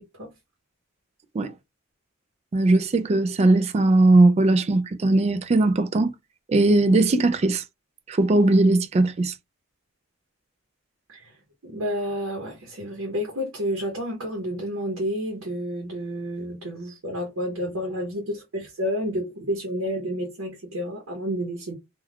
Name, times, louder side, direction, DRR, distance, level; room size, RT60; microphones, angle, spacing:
voice 1, 2.5-6.1 6.5-7.6 8.1-9.3, right 2 dB, 30° right, 0.3 m, -19 dB
voice 2, 11.6-21.7, equal, 75° right, 0.8 m, -30 dB
3.3 x 2.3 x 2.3 m
head